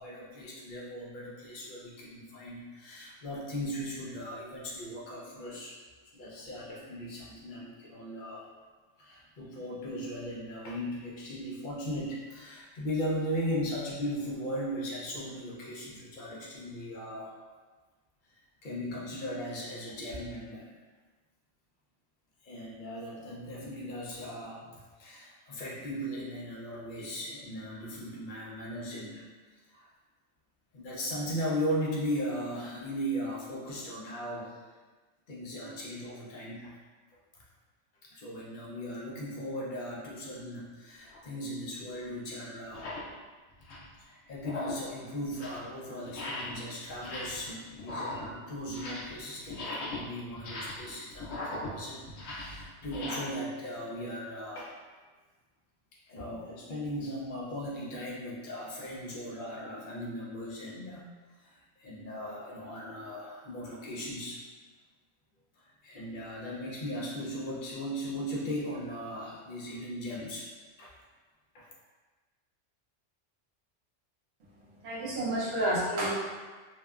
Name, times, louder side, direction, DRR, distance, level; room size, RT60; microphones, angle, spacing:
voice 1, 0.0-5.7 6.1-8.5 9.0-17.5 18.6-20.7 22.4-24.7 25.0-29.3 29.7-29.9 30.7-34.6 35.3-36.8 38.1-42.9 44.0-54.7 56.1-61.1 61.4-64.4 65.6-70.5 70.8-71.0 71.5-71.7, equal, 55° left, -5 dB, 0.6 m, -38 dB
sound 1, 41.1-41.3 42.0-42.1 42.6-43.1 43.5-44.0 44.4-44.9 45.2-45.7 46.1-46.6 46.9-47.5 47.8-49.2 49.5-53.2, left 2 dB, 85° left, 1.0 m, -39 dB
voice 2, 74.8-76.1, right 1 dB, 60° right, -7 dB, 1.1 m, -29 dB
2.7 x 2.1 x 2.3 m, 1.3 s
omnidirectional pair, 1.3 m